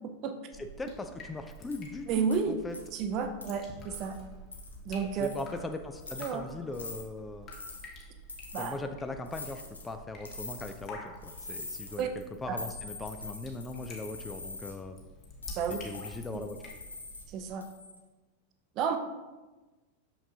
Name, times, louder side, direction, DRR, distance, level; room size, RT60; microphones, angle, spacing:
Drip, 0.5-17.5, left 1 dB, 30° left, 1.2 m, -49 dB
voice 1, 0.5-2.8 5.2-7.5 8.6-15.0 15.8-16.6, left 2 dB, 10° left, 7 dB, 0.4 m, -40 dB
sound 1, 1.7-1.8 2.3-2.4 2.7-3.0 3.4-3.5 3.9-4.2 4.5-4.8 5.2-5.6 6.0-6.3 6.7-7.0 7.5-7.9 8.3-8.7 9.3-9.9 10.2-10.9 11.2-12.0 12.6-14.7 15.4-17.2 17.6-18.0, left 3 dB, 75° left, 0.9 m, -44 dB
voice 2, 2.1-2.6 2.9-4.2 4.9-5.3 6.2-6.5 8.5-8.7 12.0-12.1 12.5-12.6 15.6-15.8 16.3-16.4 17.3-17.7 18.8-19.0, right 6 dB, 40° right, 7 dB, 0.6 m, -31 dB
6.5 x 5.8 x 2.7 m, 1.2 s
figure-of-eight pair, 90°, 0 cm